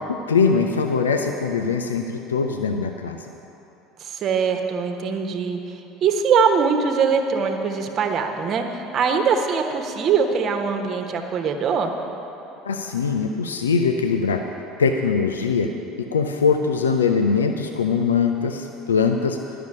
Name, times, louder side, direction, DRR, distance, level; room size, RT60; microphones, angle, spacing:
voice 1, 0.1-3.2 12.6-14.4 14.8-15.7 16.0-19.4, left 5 dB, 75° left, 5 dB, 0.5 m, -22 dB
voice 2, 4.0-5.6 6.0-11.9, right 6 dB, 40° right, 4 dB, 1.2 m, -22 dB
12.0 x 6.9 x 8.6 m, 3.0 s
figure-of-eight pair, 65°, 0 cm